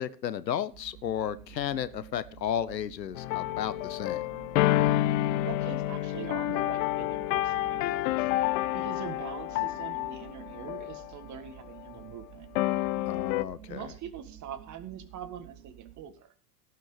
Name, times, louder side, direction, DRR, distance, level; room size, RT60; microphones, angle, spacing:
voice 1, 0.0-4.2 13.1-13.9, left 9 dB, 85° left, 16 dB, 0.9 m, -33 dB
sound 1, 0.7-16.0, right 12 dB, 65° right, 2.3 m, -51 dB
sound 2, 3.2-11.1 11.7-11.9 12.6-13.4, left 15 dB, 55° left, 0.7 m, -29 dB
voice 2, 5.4-8.3 8.7-12.5 13.7-16.3, right 8 dB, 35° right, 9 dB, 1.8 m, -43 dB
17.0 x 6.0 x 4.9 m, 0.43 s
figure-of-eight pair, 85°, 49 cm